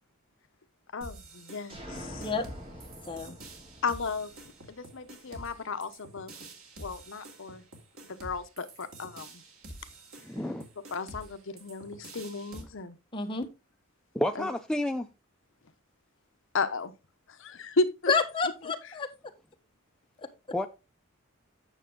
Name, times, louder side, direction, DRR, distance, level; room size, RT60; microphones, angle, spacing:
voice 1, 0.9-2.3 3.8-6.3 6.8-7.6 8.1-9.4 10.9-13.0 14.4-14.5 16.5-16.9 17.3-18.1 18.6-18.7, left 3 dB, 60° left, 0.7 m, -34 dB
sound 1, 1.0-12.6, right 2 dB, 75° right, 2.4 m, -48 dB
sound 2, 1.7-5.4, equal, 25° right, 2.5 m, -46 dB
voice 2, 10.2-10.6 14.1-15.1 20.5-20.7, left 1 dB, 5° left, 0.4 m, -30 dB
voice 3, 13.1-13.5 18.1-19.1 20.2-20.3, left 4 dB, 25° left, 1.3 m, -29 dB
9.1 x 6.6 x 3.7 m
head